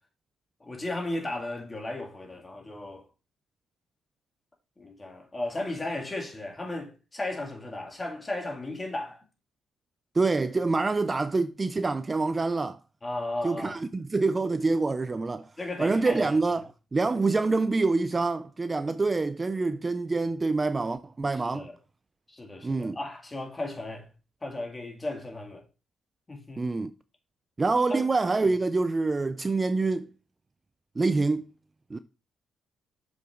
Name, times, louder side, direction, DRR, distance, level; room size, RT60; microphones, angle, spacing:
voice 1, 0.6-3.1 4.8-9.2 13.0-13.8 15.6-16.3 21.5-21.8 22.3-24.1 24.4-25.6 26.3-26.8 27.9-28.0, left 2 dB, 20° left, 2.5 m, -35 dB
voice 2, 10.1-12.8 13.4-15.5 15.8-21.7 22.6-23.0 26.6-26.9 27.6-30.1 31.0-31.5 31.9-32.0, right 3 dB, 25° right, 0.4 m, -26 dB
6.9 x 5.9 x 3.8 m
cardioid pair, 90°, 0 cm